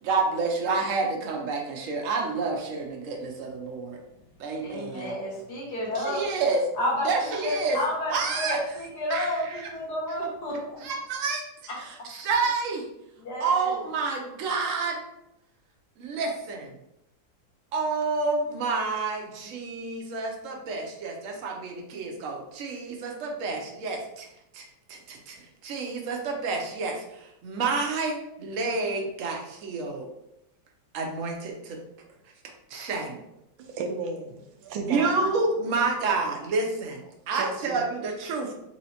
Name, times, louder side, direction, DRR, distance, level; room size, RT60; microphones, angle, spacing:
voice 1, 0.0-4.0 4.4-5.1 6.0-6.6 7.0-7.8 8.1-8.6 9.1-9.3 9.6-9.7 10.8-11.5 12.1-12.8 13.4-15.0 16.0-16.7 17.7-24.3 24.5-25.4 25.6-30.1 30.9-31.8 32.7-33.2 34.9-37.0 37.3-38.5, right 4 dB, 60° right, 1 dB, 0.8 m, -29 dB
voice 2, 4.6-6.3 6.7-10.8 11.7-12.1 13.2-13.8, left 1 dB, 60° left, -4 dB, 1.4 m, -31 dB
voice 3, 33.6-35.3 37.4-37.8, right 3 dB, 85° right, 4 dB, 1.4 m, -34 dB
4.3 x 3.1 x 2.8 m, 0.85 s
omnidirectional pair, 2.1 m